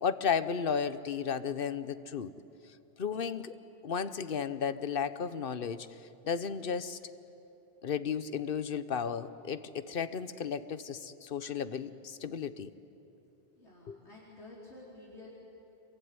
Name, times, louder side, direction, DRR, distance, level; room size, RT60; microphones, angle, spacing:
voice 1, 0.0-2.3 3.0-3.5 3.8-6.0 6.2-7.0 7.8-12.7 13.9-14.0, left 7 dB, 55° left, 13 dB, 1.1 m, -34 dB
voice 2, 13.5-15.3, left 2 dB, 75° left, -6 dB, 5.1 m, -51 dB
27.0 x 23.0 x 9.7 m, 2.8 s
omnidirectional pair, 1.2 m